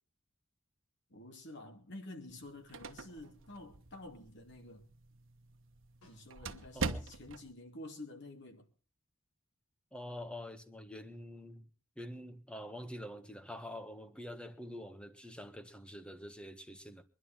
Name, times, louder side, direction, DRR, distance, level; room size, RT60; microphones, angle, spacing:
voice 1, 1.1-4.9 6.1-8.7, left 2 dB, 60° left, 2.9 m, -49 dB
sound 1, 2.3-7.5, right 3 dB, 65° right, 1.2 m, -43 dB
Snare drum, 6.0-6.9 11.4-11.5, left 1 dB, 85° left, 5.6 m, -67 dB
voice 2, 9.9-11.7 12.0-17.0, left 1 dB, 5° left, 1.4 m, -46 dB
23.5 x 11.0 x 4.5 m
head